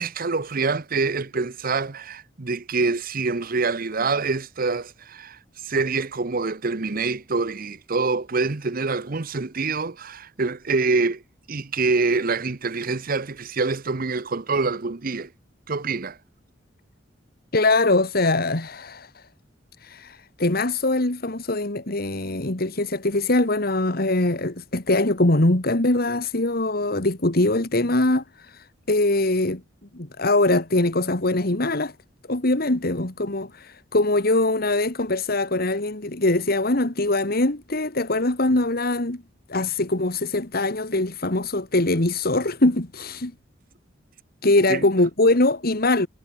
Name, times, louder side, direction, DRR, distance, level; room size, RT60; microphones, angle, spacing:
voice 1, 0.0-11.2 11.5-15.3 15.7-16.2 44.7-44.8, right 4 dB, 50° right, 0.9 m, -25 dB
voice 2, 17.5-19.3 19.8-29.6 29.9-31.9 32.3-39.2 39.5-43.3 44.4-46.1, left 2 dB, 55° left, 2.2 m, -22 dB
head